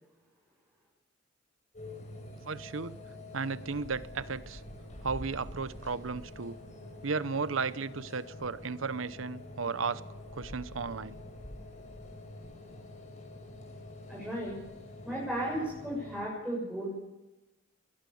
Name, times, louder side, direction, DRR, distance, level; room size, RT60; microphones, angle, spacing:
sound 1, 1.7-16.2, left 1 dB, 40° left, 6.0 m, -46 dB
voice 1, 2.4-3.0 3.3-4.6 5.0-6.6 7.0-10.0 10.3-11.2, right 4 dB, 90° right, 16 dB, 0.9 m, -34 dB
voice 2, 14.1-14.6 15.0-16.9, right 1 dB, 5° right, -5 dB, 6.9 m, -34 dB
21.5 x 19.0 x 7.1 m, 0.99 s
head